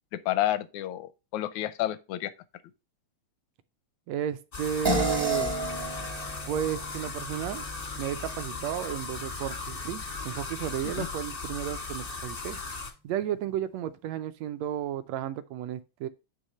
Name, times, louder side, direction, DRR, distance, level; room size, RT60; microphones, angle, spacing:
voice 1, 0.1-2.3 11.0-11.1, left 13 dB, 85° left, 2.0 m, -30 dB
voice 2, 4.1-5.6 6.5-7.6 7.9-12.6 13.0-16.1, right 10 dB, 80° right, 1.6 m, -33 dB
sound 1, 4.5-12.9, left 3 dB, 55° left, 0.6 m, -37 dB
sound 2, 4.8-9.6, right 2 dB, 35° right, 0.3 m, -33 dB
9.7 x 3.5 x 5.4 m
omnidirectional pair, 3.4 m